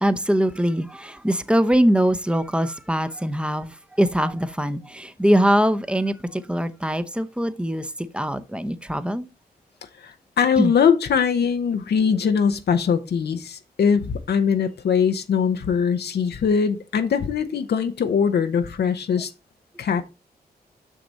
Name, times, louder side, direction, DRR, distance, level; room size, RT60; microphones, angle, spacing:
voice 1, 0.0-9.3 10.6-10.7, equal, 5° right, 0.8 m, -22 dB
voice 2, 10.0-19.3 19.8-20.0, left 6 dB, 75° left, 0.8 m, -21 dB
6.4 x 6.0 x 4.1 m
cardioid pair, 60°, 17 cm